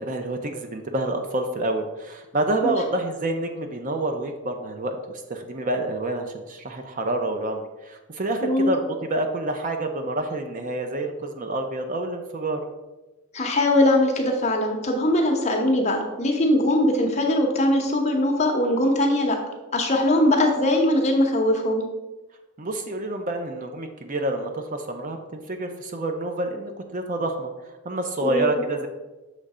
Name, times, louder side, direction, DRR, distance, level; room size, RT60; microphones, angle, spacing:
voice 1, 0.0-12.6 22.6-27.5 27.8-28.9, right 1 dB, 40° right, 5 dB, 0.5 m, -28 dB
voice 2, 13.3-19.4 19.7-21.8 28.2-28.6, left 1 dB, 30° left, 1 dB, 0.9 m, -21 dB
6.6 x 3.2 x 4.8 m, 1.1 s
head